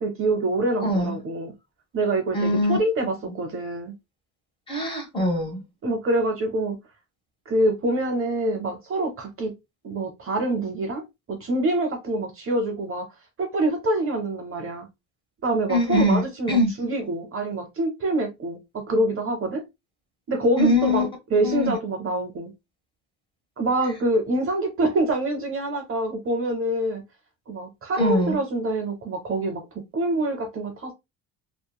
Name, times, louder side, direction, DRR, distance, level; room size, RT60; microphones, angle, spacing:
voice 1, 0.0-1.5 1.9-3.9 5.8-6.8 7.5-9.5 9.8-11.0 11.3-13.1 13.4-14.9 15.4-19.6 20.3-22.5 23.6-27.0 27.5-29.6 29.9-30.9, right 1 dB, 40° right, 0.7 m, -25 dB
voice 2, 0.8-1.2 2.3-2.8 4.7-5.6 15.7-16.7 20.6-21.1 21.4-21.7 28.0-28.4, left 1 dB, 15° left, 1.1 m, -22 dB
2.9 x 2.2 x 2.2 m
cardioid pair, 90°, 35 cm